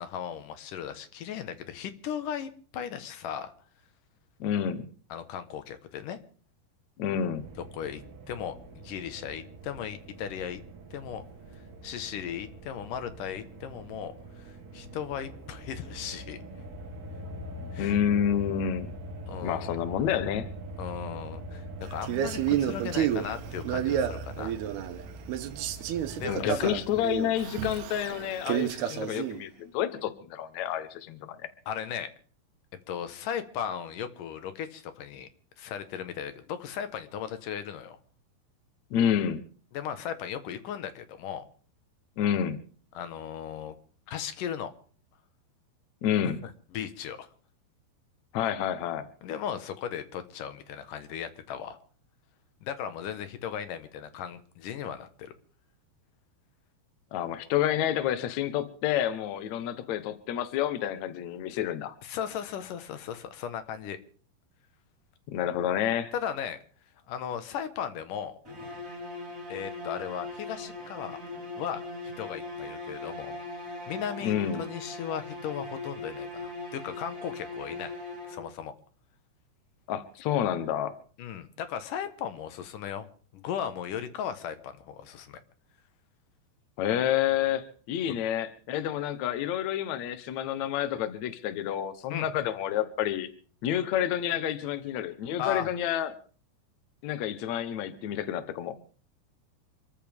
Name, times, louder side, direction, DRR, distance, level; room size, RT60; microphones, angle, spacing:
voice 1, 0.0-3.5 5.1-6.2 7.6-8.0 8.3-10.6 10.9-11.2 11.8-16.4 17.7-18.0 19.3-19.8 20.8-24.5 26.2-26.7 31.7-32.1 32.9-35.3 35.6-38.0 39.7-41.5 42.9-43.8 44.1-44.7 46.7-47.3 49.2-51.8 52.6-55.3 62.0-64.0 66.1-66.6 67.1-68.4 69.5-71.2 71.6-73.4 73.9-77.9 78.3-78.7 81.2-83.1 83.3-85.4 92.1-92.3 95.4-95.7, left 8 dB, 65° left, 10 dB, 2.4 m, -36 dB
voice 2, 4.4-4.9 7.0-7.4 17.8-18.9 19.4-20.5 26.3-31.5 38.9-39.4 42.2-42.6 46.0-46.4 48.3-49.1 57.1-61.9 65.3-66.1 74.2-74.6 79.9-80.9 86.8-93.3 93.6-96.1 97.0-98.8, left 10 dB, 85° left, 11 dB, 1.6 m, -29 dB
sound 1, 7.3-27.2, right 1 dB, 45° right, 2.2 m, -43 dB
Male speech man speaking, 22.0-25.0 25.3-29.4, right 10 dB, 75° right, 3.0 m, -30 dB
sound 2, 68.4-78.7, left 2 dB, 20° right, 4.4 m, -40 dB
27.0 x 14.0 x 3.6 m, 0.42 s
omnidirectional pair, 4.9 m